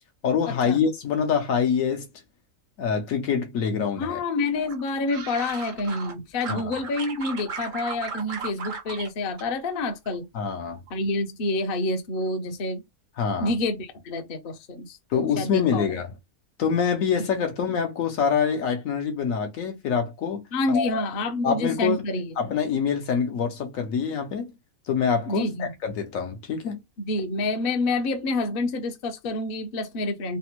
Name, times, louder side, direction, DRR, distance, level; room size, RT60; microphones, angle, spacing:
voice 1, 0.2-2.1 2.8-4.2 6.5-6.7 10.3-10.8 13.2-13.5 15.1-16.1 16.6-21.0 21.4-22.0 22.4-24.5 24.9-26.8, left 6 dB, 70° left, 1.1 m, -25 dB
voice 2, 4.0-10.2 10.9-12.8 13.4-15.9 20.5-22.2 25.3-25.7 27.0-30.4, left 2 dB, 50° left, 0.7 m, -28 dB
sound 1, 4.7-6.1 6.4-9.1 9.4-10.2 10.5-10.9, right 5 dB, 50° right, 0.7 m, -36 dB
3.2 x 2.1 x 2.9 m
omnidirectional pair, 1.5 m